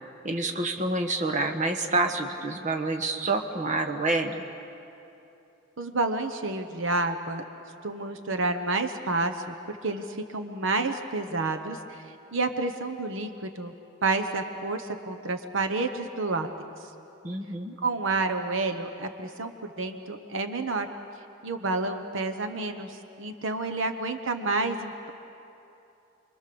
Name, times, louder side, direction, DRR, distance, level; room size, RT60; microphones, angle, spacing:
voice 1, 0.2-4.4 17.2-17.7, right 2 dB, 35° right, 4 dB, 1.3 m, -28 dB
voice 2, 5.8-7.4 7.8-12.0 12.3-13.7 14.0-16.5 17.8-20.9 21.4-25.1, right 3 dB, 65° right, 7 dB, 1.1 m, -29 dB
29.0 x 23.0 x 7.0 m, 2.8 s
head